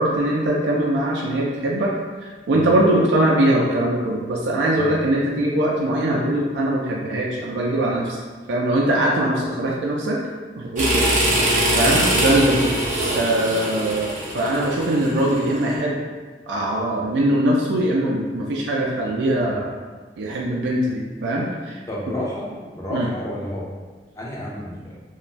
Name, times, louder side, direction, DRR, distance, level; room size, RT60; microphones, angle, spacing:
voice 1, 0.0-1.9 2.2-8.2 8.5-10.2 10.6-11.1 11.7-12.7 13.1-16.0 16.5-19.7 20.2-21.8 22.9-23.1, right 1 dB, 85° right, -3 dB, 0.4 m, -21 dB
sound 1, 10.8-15.6, right 1 dB, 45° right, 0.6 m, -22 dB
voice 2, 21.9-22.5 22.7-23.7 24.2-25.0, equal, 20° left, -5 dB, 0.4 m, -30 dB
2.5 x 2.1 x 3.0 m, 1.4 s
head